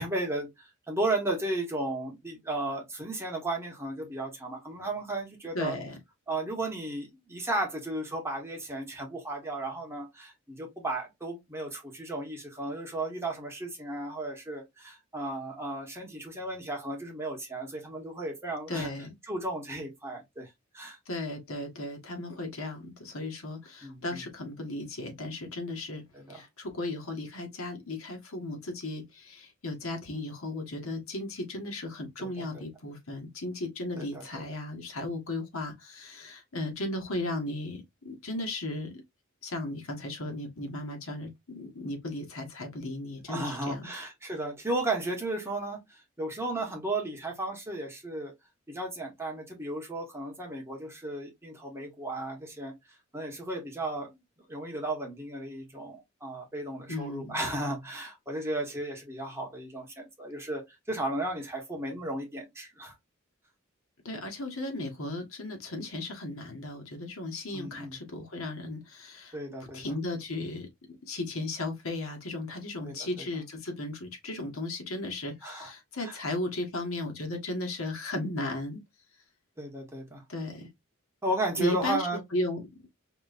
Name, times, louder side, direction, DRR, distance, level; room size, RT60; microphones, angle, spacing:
voice 1, 0.0-5.8 6.3-18.9 19.3-20.5 20.7-21.0 23.8-24.2 26.1-26.4 32.2-32.6 34.0-34.4 43.3-48.3 48.7-52.7 53.1-54.2 54.5-62.9 67.5-68.0 69.3-69.8 72.8-73.2 75.4-75.7 76.0-76.2 79.6-80.2 81.2-82.2, right 2 dB, 10° right, 1.2 m, -34 dB
voice 2, 5.5-6.0 18.7-19.1 21.1-26.0 26.3-38.9 39.4-43.9 56.9-57.4 64.0-69.3 69.7-70.7 71.0-78.8 80.3-80.7 81.6-82.9, left 2 dB, 80° left, 1.4 m, -35 dB
5.2 x 3.0 x 2.5 m
head